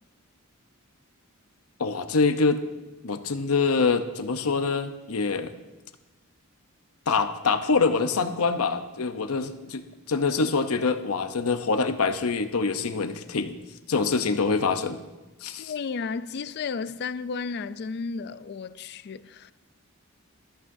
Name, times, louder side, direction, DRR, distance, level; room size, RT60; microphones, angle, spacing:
voice 1, 1.8-2.6 3.0-5.5 7.1-13.6 13.9-15.0 15.4-15.7, left 4 dB, 85° left, 0.8 m, -25 dB
voice 2, 15.6-19.5, left 5 dB, 50° left, 0.4 m, -33 dB
18.5 x 14.0 x 2.7 m
head